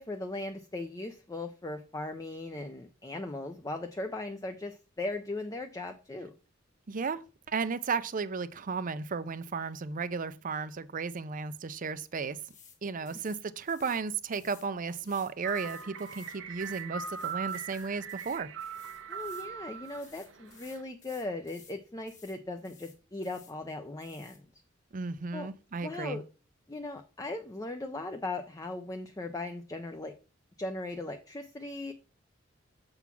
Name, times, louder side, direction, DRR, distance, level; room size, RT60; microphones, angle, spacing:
voice 1, 0.0-6.3 19.1-24.4 25.3-25.5 25.8-26.2 26.7-30.1 30.6-31.9, left 2 dB, 20° left, 0.5 m, -38 dB
voice 2, 6.9-7.2 7.5-12.4 12.8-18.5 24.9-26.2, right 5 dB, 45° right, 0.5 m, -34 dB
sound 1, 12.4-12.8 13.1-14.0 14.3-19.5 19.8-21.8 22.1-22.4 22.6-23.5 24.0-24.4, left 6 dB, 40° left, 1.6 m, -57 dB
sound 2, 15.4-20.8, right 7 dB, 70° right, 0.8 m, -40 dB
7.1 x 3.8 x 5.9 m
head